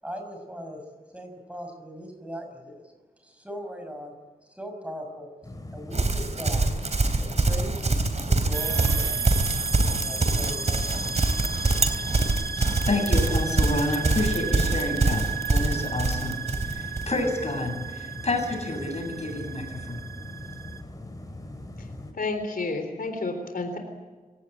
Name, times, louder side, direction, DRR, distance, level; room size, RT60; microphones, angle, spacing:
voice 1, 0.0-0.8 1.1-2.9 3.2-4.1 4.4-5.3 5.7-6.7 7.2-7.9 8.3-9.3 10.0-11.1, equal, 10° right, 5 dB, 6.1 m, -39 dB
sound 1, 5.4-22.1, left 1 dB, 25° left, 4.7 m, -40 dB
Livestock farm animals working animals, 5.9-17.1, right 2 dB, 45° right, 3.3 m, -24 dB
sound 2, 8.5-20.8, right 6 dB, 90° right, 1.7 m, -34 dB
voice 2, 12.9-16.4 16.6-20.0, left 2 dB, 45° left, 4 dB, 7.4 m, -29 dB
voice 3, 22.1-23.8, left 3 dB, 70° left, 5 dB, 3.9 m, -30 dB
27.0 x 17.5 x 8.9 m, 1.3 s
wide cardioid pair, 95°, 15 cm